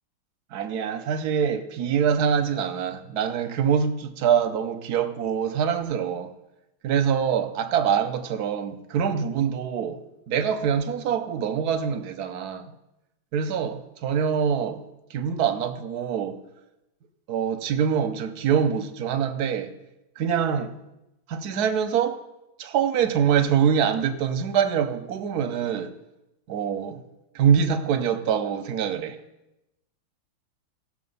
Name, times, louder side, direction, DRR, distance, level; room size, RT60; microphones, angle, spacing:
voice 1, 0.5-6.3 6.8-10.0 10.3-12.7 13.3-14.8 15.1-16.4 17.3-19.7 20.2-20.8 21.3-22.2 22.6-25.9 26.5-27.0 27.3-29.2, right 7 dB, 60° right, 1.1 m, -24 dB
15.5 x 6.7 x 5.4 m
omnidirectional pair, 2.4 m